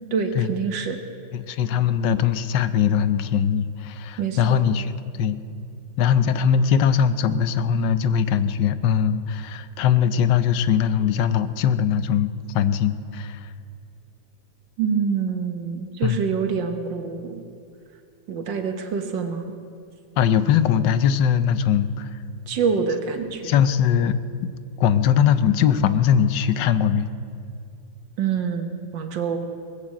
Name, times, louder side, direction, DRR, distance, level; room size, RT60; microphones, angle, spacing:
voice 1, 0.1-1.0 4.2-4.6 14.8-17.4 18.3-19.5 22.5-23.5 28.2-29.4, right 6 dB, 70° right, 5 dB, 1.9 m, -26 dB
voice 2, 1.3-4.9 5.2-5.4 6.0-13.5 16.0-16.2 20.2-22.1 23.4-24.1 24.8-27.1, left 8 dB, 75° left, 12 dB, 1.3 m, -21 dB
19.5 x 8.5 x 7.7 m, 2.4 s
omnidirectional pair, 2.1 m